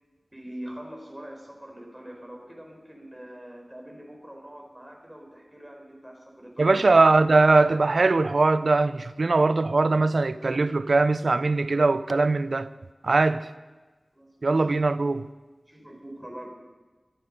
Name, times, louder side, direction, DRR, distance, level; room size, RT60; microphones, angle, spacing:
voice 1, 0.3-6.9 14.1-14.7 15.7-16.5, right 1 dB, 10° right, 4.5 m, -43 dB
voice 2, 6.6-12.7 13.0-13.5 14.4-15.3, right 3 dB, 75° right, 0.6 m, -21 dB
21.0 x 12.5 x 5.4 m
wide cardioid pair, 50°, 0 cm